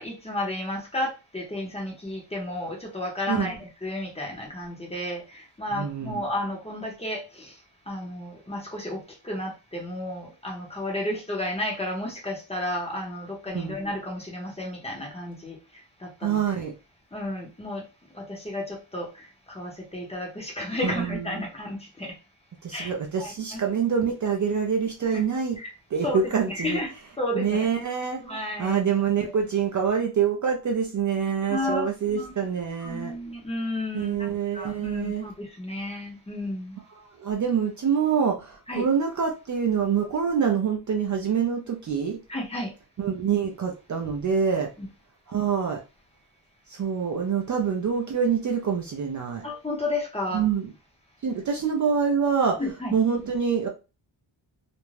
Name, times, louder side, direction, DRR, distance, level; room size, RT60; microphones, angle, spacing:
voice 1, 0.0-7.5 7.9-15.6 16.0-16.4 17.1-17.8 18.1-22.1 22.7-22.9 23.2-23.6 25.0-25.2 25.6-25.7 26.0-26.2 26.5-26.9 27.2-27.7 28.2-28.8 29.3-29.4 31.5-32.3 32.8-36.8 38.7-38.9 42.3-42.7 44.8-44.9 49.4-50.5 52.6-52.9, left 1 dB, 15° left, 0 dB, 0.6 m, -32 dB
voice 2, 5.7-6.2 13.5-13.8 16.2-16.7 20.8-21.5 22.6-25.6 25.9-26.8 27.3-28.2 28.6-33.1 33.9-35.3 37.2-42.2 43.0-44.7 45.3-45.8 46.7-49.4 50.3-50.7 51.2-52.6 52.9-53.7, right 7 dB, 40° right, 2 dB, 0.4 m, -26 dB
2.5 x 2.1 x 3.0 m, 0.30 s
wide cardioid pair, 150°, 47 cm